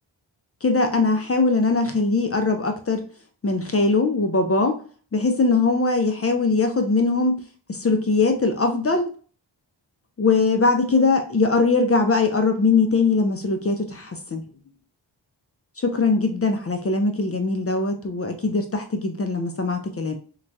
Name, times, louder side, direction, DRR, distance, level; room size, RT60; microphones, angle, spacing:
voice 1, 0.6-3.0 3.4-4.8 5.1-7.4 7.7-9.1 10.2-14.0 14.3-14.4 15.8-20.2, left 3 dB, 30° left, 5 dB, 0.4 m, -21 dB
2.9 x 2.2 x 2.6 m, 0.42 s
cardioid pair, 40°, 48 cm